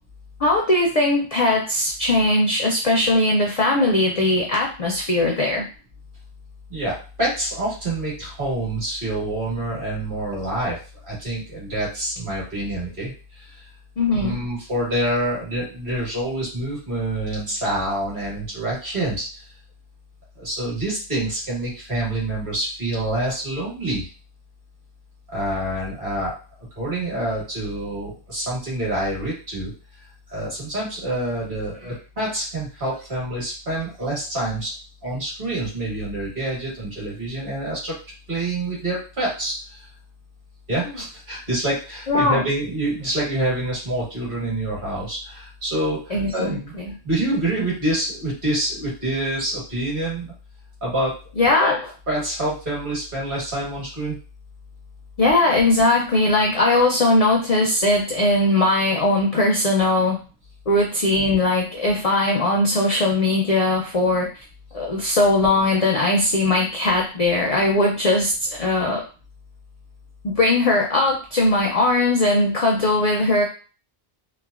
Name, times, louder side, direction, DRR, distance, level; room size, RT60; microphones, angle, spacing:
voice 1, 0.4-5.7 14.0-14.4 40.8-41.0 42.1-42.5 46.1-47.0 51.3-51.9 55.2-60.2 60.7-64.3 64.7-69.0 70.2-73.4, left 2 dB, 55° left, 0 dB, 0.4 m, -20 dB
voice 2, 6.7-10.8 11.0-13.5 14.1-19.4 20.4-24.1 25.3-26.3 26.8-29.7 30.3-34.7 35.0-38.0 38.3-39.9 40.7-46.7 47.0-50.3 50.8-51.2 52.1-54.2, right 1 dB, 50° right, -6 dB, 1.6 m, -27 dB
3.1 x 2.0 x 2.3 m, 0.36 s
omnidirectional pair, 1.1 m